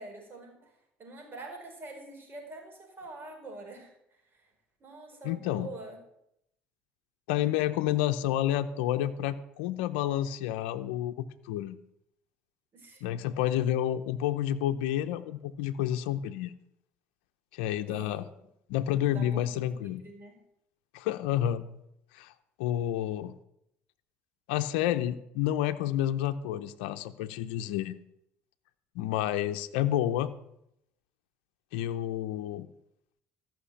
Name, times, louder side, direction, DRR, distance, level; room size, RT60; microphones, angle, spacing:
voice 1, 0.0-4.5 4.8-6.0 12.7-13.1 17.9-18.3 19.1-20.4, right 2 dB, 40° right, 3 dB, 4.8 m, -46 dB
voice 2, 5.2-5.7 7.3-11.8 13.0-16.5 17.5-18.3 18.7-20.0 20.9-21.6 22.1-22.3 22.6-23.3 24.5-28.0 28.9-30.3 31.7-32.7, left 12 dB, 80° left, 10 dB, 0.6 m, -29 dB
14.0 x 6.1 x 8.3 m, 0.78 s
hypercardioid pair, 70°, 6 cm